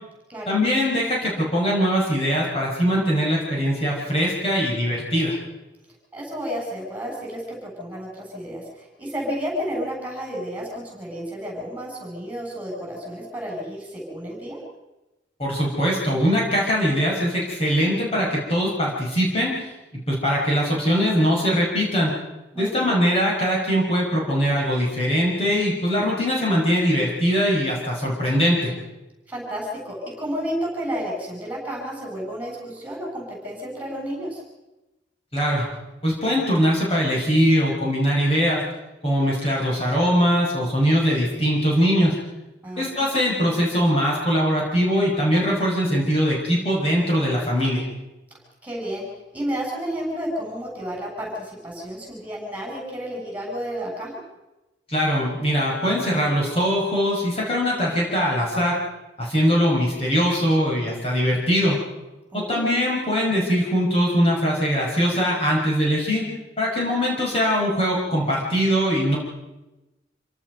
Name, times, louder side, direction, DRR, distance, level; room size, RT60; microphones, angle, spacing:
voice 1, 0.5-5.4 15.4-19.7 20.1-22.1 22.6-28.7 35.3-35.7 36.0-38.6 39.0-42.2 42.8-47.8 54.9-58.8 59.2-61.8 62.3-66.3 66.6-69.2, equal, 30° left, -4 dB, 5.6 m, -21 dB
voice 2, 6.1-14.6 22.5-22.9 29.3-34.4 42.6-43.0 48.6-49.0 49.3-54.2 62.3-62.6, equal, 10° right, -2 dB, 7.5 m, -31 dB
27.5 x 18.0 x 5.4 m, 1.0 s
head